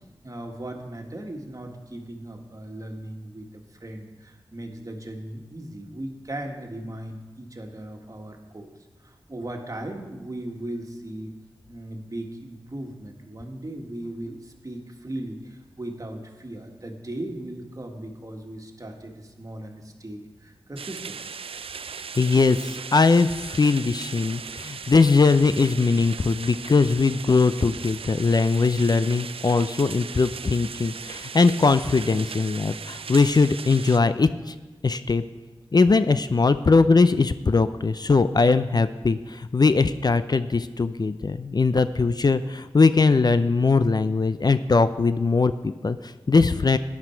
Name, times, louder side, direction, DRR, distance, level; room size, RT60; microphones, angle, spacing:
voice 1, 0.2-8.7 9.0-11.3 11.7-21.3, right 1 dB, 35° right, 3 dB, 1.7 m, -37 dB
sound 1, 20.8-34.0, right 6 dB, 75° right, 0.4 m, -38 dB
voice 2, 22.2-34.5 34.8-35.2 35.7-46.8, left 4 dB, 45° left, 12 dB, 0.5 m, -20 dB
12.5 x 9.7 x 4.5 m, 1.2 s
cardioid pair, 40°, 10 cm